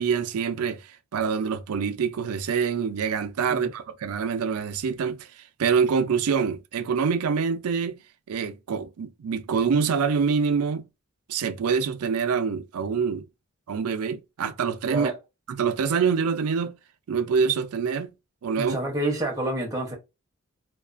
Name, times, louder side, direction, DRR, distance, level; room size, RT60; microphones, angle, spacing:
voice 1, 0.0-8.0 8.3-10.9 11.3-13.2 13.7-15.1 15.5-16.8 17.1-18.1 18.4-18.8, right 6 dB, 75° right, 0.4 m, -25 dB
voice 2, 18.6-19.9, right 1 dB, 15° right, 0.7 m, -28 dB
2.3 x 2.3 x 2.4 m
head